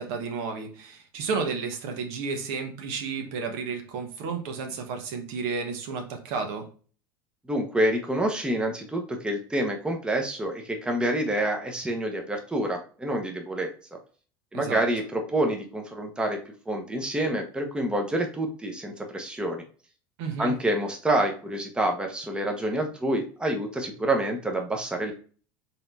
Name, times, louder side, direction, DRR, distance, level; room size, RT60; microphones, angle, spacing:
voice 1, 0.0-6.7 14.5-14.8 20.2-20.5, right 5 dB, 65° right, 4 dB, 1.1 m, -32 dB
voice 2, 7.5-13.7 14.5-16.4 16.7-19.6 20.4-25.1, right 1 dB, 10° right, 2 dB, 0.9 m, -27 dB
4.2 x 3.8 x 2.6 m, 0.40 s
hypercardioid pair, 85°, 11 cm